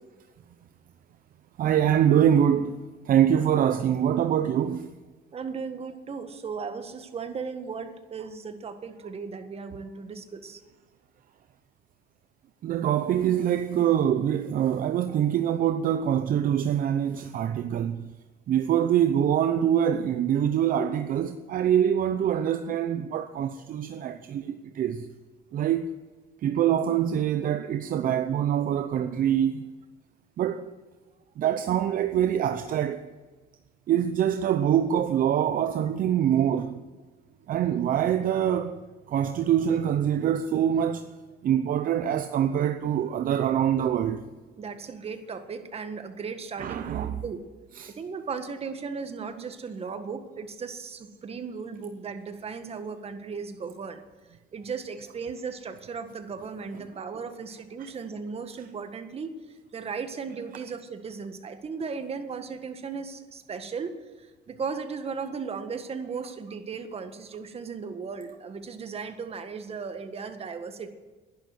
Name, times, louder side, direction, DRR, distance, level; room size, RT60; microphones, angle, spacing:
voice 1, 1.6-2.8 3.1-4.9 12.6-18.1 18.5-25.1 25.5-25.9 26.4-29.6 30.4-30.7 31.4-33.1 33.9-36.8 37.5-38.8 39.1-41.1 41.4-44.2 46.6-47.2 47.8-47.9 57.8-57.9, right 9 dB, 55° right, 0.7 m, -24 dB
voice 2, 5.3-10.6 44.6-47.4 48.0-54.0 54.5-59.3 59.7-63.9 64.5-70.9, right 5 dB, 35° right, 1.6 m, -36 dB
11.5 x 11.0 x 8.0 m
cardioid pair, 110°, 17 cm